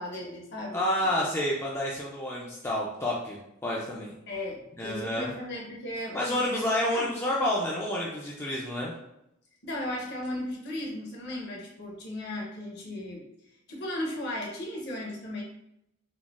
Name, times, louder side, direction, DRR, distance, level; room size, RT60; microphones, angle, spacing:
voice 1, 0.0-1.3 4.3-7.1 9.6-13.2 13.7-15.4, left 1 dB, 50° left, -1 dB, 0.7 m, -36 dB
voice 2, 0.7-4.1 4.8-5.3 6.1-8.9, left 1 dB, 10° left, -5 dB, 0.3 m, -29 dB
3.7 x 2.1 x 2.3 m, 0.81 s
head